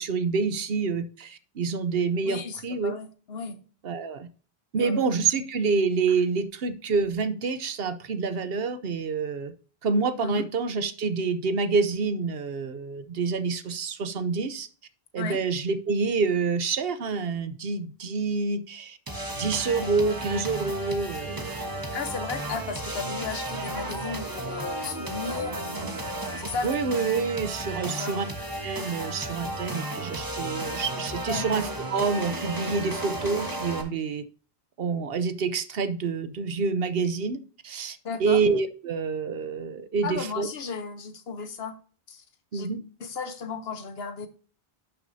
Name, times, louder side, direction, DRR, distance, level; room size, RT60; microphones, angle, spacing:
voice 1, 0.0-3.0 3.8-4.3 4.7-9.5 9.8-14.7 15.1-19.0 19.4-22.0 26.6-28.3 28.6-34.2 34.8-40.5 42.5-42.9, right 4 dB, 70° right, 1.0 m, -27 dB
voice 2, 2.2-3.6 4.8-5.0 10.2-10.4 15.2-15.4 21.9-26.0 26.4-26.8 27.8-28.2 31.3-31.5 38.0-38.4 40.0-41.8 42.1-42.2 42.5-42.7 43.0-44.3, left 5 dB, 75° left, 1.2 m, -35 dB
sound 1, 19.1-33.8, right 1 dB, 20° right, 1.2 m, -34 dB
11.0 x 6.2 x 2.7 m
omnidirectional pair, 1.0 m